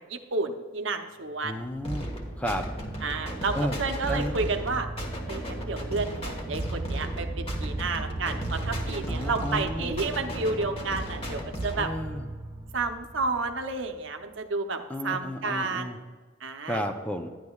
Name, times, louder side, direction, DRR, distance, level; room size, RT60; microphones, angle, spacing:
voice 1, 0.1-1.6 3.0-4.9 5.3-11.9 12.7-16.0 16.4-16.8, right 3 dB, 70° right, 6 dB, 0.8 m, -31 dB
voice 2, 1.4-2.1 2.4-2.7 3.5-3.8 4.1-4.3 9.1-10.0 11.8-12.3 14.9-16.0 16.7-17.3, equal, 5° left, 5 dB, 0.5 m, -32 dB
sound 1, 1.8-11.9, equal, 30° left, 1.3 m, -36 dB
sound 2, 1.8-14.3, right 2 dB, 20° right, 1.8 m, -38 dB
11.5 x 10.5 x 2.3 m, 1.5 s
head